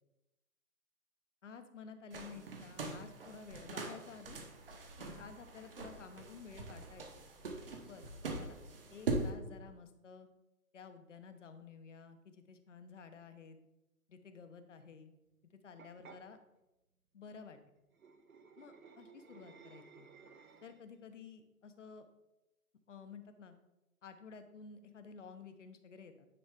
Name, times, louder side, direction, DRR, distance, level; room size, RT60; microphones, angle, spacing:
voice 1, 1.4-4.4 5.0-7.3 7.9-8.6 8.9-10.3 10.7-13.6 14.1-15.1 15.6-16.4 17.1-17.6 18.6-20.1 20.6-22.1 22.9-23.5 24.0-26.3, left 5 dB, 50° left, 9 dB, 0.9 m, -53 dB
sound 1, 2.1-9.3, right 3 dB, 35° right, 1.0 m, -42 dB
sound 2, 15.8-16.2 17.9-21.0, right 5 dB, 65° right, 0.9 m, -57 dB
9.4 x 4.2 x 3.6 m, 0.95 s
figure-of-eight pair, 155°, 46 cm